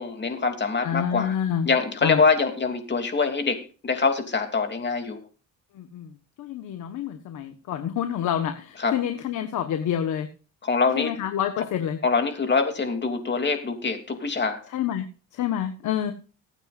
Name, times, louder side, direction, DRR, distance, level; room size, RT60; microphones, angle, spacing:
voice 1, 0.0-1.4 1.6-5.2 8.8-8.9 10.6-11.2 12.0-14.6, left 4 dB, 35° left, 6 dB, 3.0 m, -24 dB
voice 2, 0.8-1.7 2.0-2.2 5.7-6.1 6.4-10.3 11.0-12.0 14.7-15.1 15.3-16.1, left 9 dB, 80° left, 7 dB, 1.5 m, -27 dB
23.5 x 9.1 x 2.6 m, 0.35 s
cardioid pair, 90°, 30 cm